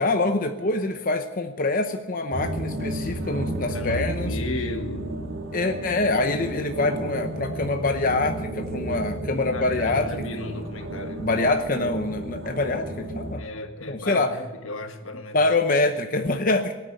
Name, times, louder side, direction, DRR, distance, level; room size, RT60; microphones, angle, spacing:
voice 1, 0.0-4.3 5.5-10.2 11.2-13.4 13.9-14.3 15.3-16.7, left 2 dB, 45° left, 6 dB, 0.8 m, -25 dB
sound 1, 2.3-13.4, right 1 dB, 85° right, 1.6 m, -32 dB
voice 2, 3.6-5.2 9.5-11.3 11.8-12.0 13.4-15.4, left 2 dB, 85° left, 6 dB, 1.6 m, -34 dB
18.5 x 9.2 x 8.2 m, 1.1 s
head